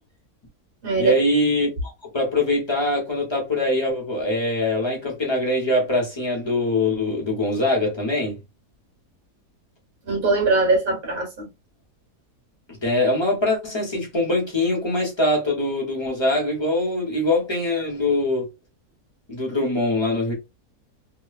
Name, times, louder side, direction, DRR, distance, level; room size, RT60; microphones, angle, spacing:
voice 1, 1.0-8.4 12.8-18.5 19.3-20.3, left 1 dB, 20° left, 0.8 m, -23 dB
voice 2, 10.0-11.5, right 3 dB, 35° right, 1.3 m, -21 dB
2.9 x 2.2 x 2.2 m
omnidirectional pair, 1.7 m